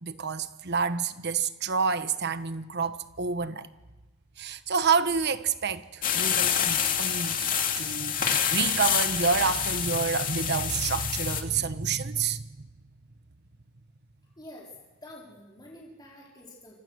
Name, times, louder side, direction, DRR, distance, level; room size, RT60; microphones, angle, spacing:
voice 1, 0.0-3.7 4.4-12.4, right 5 dB, 55° right, 1.2 m, -28 dB
sound 1, 6.0-11.4, left 8 dB, 45° left, 2.3 m, -27 dB
voice 2, 14.3-14.7 15.0-16.8, left 1 dB, 20° left, 4.3 m, -47 dB
28.0 x 25.5 x 6.5 m
head